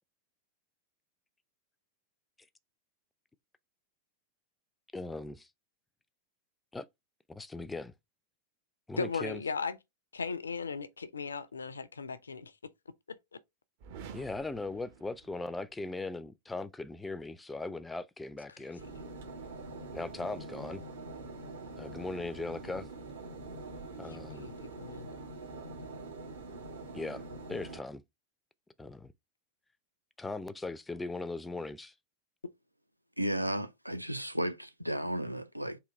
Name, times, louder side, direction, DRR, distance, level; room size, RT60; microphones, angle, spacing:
voice 1, 4.9-5.5 6.7-6.9 7.3-7.9 8.9-9.4 14.1-18.8 19.9-20.8 21.7-22.9 24.0-24.5 26.9-27.2 27.5-28.0 28.8-29.1 30.2-31.9, left 3 dB, 10° left, 0.4 m, -39 dB
voice 2, 9.0-9.8 10.1-12.5 13.1-13.2 24.1-25.1, left 5 dB, 75° left, 0.5 m, -37 dB
sound 1, 13.8-15.8, right 6 dB, 50° right, 0.9 m, -50 dB
sound 2, 18.8-27.8, right 2 dB, 65° right, 1.4 m, -44 dB
voice 3, 33.2-35.8, right 1 dB, 90° right, 0.5 m, -34 dB
3.8 x 2.8 x 4.2 m
figure-of-eight pair, 90°, 0 cm